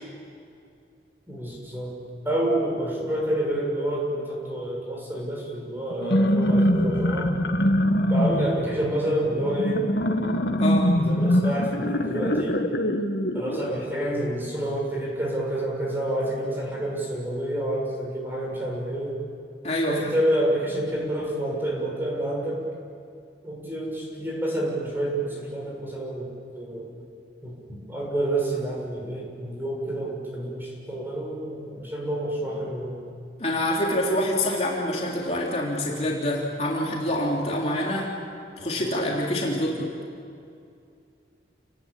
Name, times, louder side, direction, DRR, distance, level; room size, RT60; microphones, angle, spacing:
voice 1, 1.3-2.0 2.2-7.3 8.1-9.9 11.0-12.6 13.3-19.2 19.9-22.7 23.4-26.9 27.4-33.0, right 1 dB, 10° right, -2 dB, 6.5 m, -28 dB
sound 1, 5.9-13.8, equal, 70° left, 1.8 m, -23 dB
voice 2, 10.6-10.9 19.6-20.1 33.4-38.1 38.6-40.0, left 1 dB, 35° left, -3 dB, 3.5 m, -26 dB
29.5 x 20.0 x 8.7 m, 2.5 s
head